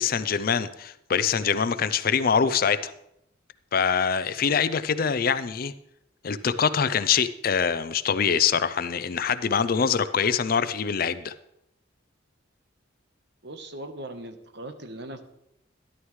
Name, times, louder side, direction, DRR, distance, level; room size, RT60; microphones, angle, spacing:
voice 1, 0.0-2.9 3.7-5.7 6.2-11.3, left 6 dB, 50° left, 14 dB, 0.5 m, -24 dB
voice 2, 13.4-15.2, right 1 dB, 60° right, 8 dB, 1.1 m, -39 dB
13.0 x 11.0 x 3.2 m, 0.80 s
head